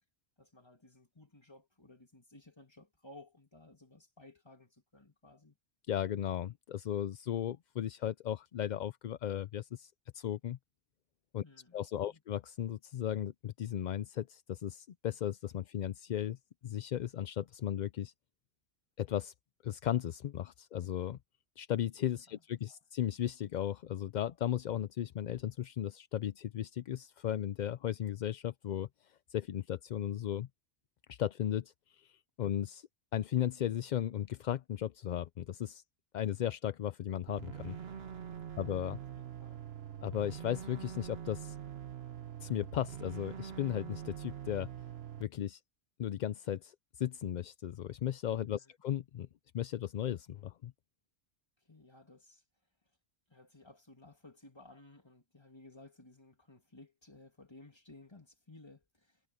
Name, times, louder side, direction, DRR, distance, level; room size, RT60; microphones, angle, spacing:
voice 1, 0.4-5.6 11.4-12.2 22.3-22.4 22.7-22.8 39.2-39.7 48.6-48.8 51.6-52.4 53.3-59.2, left 2 dB, 25° left, 2.7 m, -57 dB
voice 2, 5.9-10.6 11.3-11.4 11.7-16.4 16.6-18.1 19.0-19.3 19.6-21.2 21.6-30.5 31.1-35.8 36.1-37.8 38.6-39.0 40.0-41.6 42.4-44.7 45.2-45.6 46.0-49.3 49.5-50.7, left 10 dB, 55° left, 0.5 m, -36 dB
sound 1, 37.3-45.2, right 9 dB, 70° right, 1.3 m, -44 dB
omnidirectional pair, 1.1 m